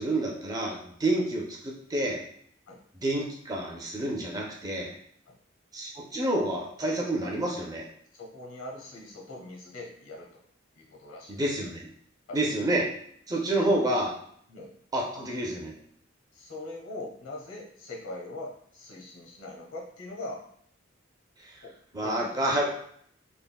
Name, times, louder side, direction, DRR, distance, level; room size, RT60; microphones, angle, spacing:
voice 1, 0.0-1.5 1.9-2.2 3.0-4.9 5.7-7.8 11.3-11.9 12.3-12.9 13.3-14.1 14.9-15.8 21.4-21.5 21.9-22.7, right 1 dB, 20° right, -1 dB, 0.4 m, -28 dB
voice 2, 8.1-10.3 10.8-11.4 12.3-12.4 13.6-13.8 14.5-14.7 16.3-20.4 21.6-22.7, left 2 dB, 85° left, -1 dB, 0.8 m, -42 dB
3.4 x 2.0 x 2.2 m, 0.63 s
head